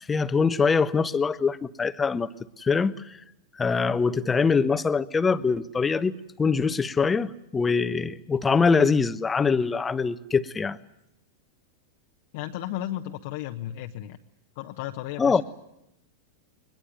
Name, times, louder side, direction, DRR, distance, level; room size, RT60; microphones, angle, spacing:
voice 1, 0.1-2.3 2.6-3.1 3.6-10.8 15.2-15.4, left 5 dB, 15° left, 15 dB, 1.0 m, -23 dB
voice 2, 12.3-14.2 14.5-15.4, left 13 dB, 50° left, 5 dB, 1.1 m, -34 dB
22.5 x 21.5 x 9.3 m, 0.82 s
figure-of-eight pair, 90°, 0 cm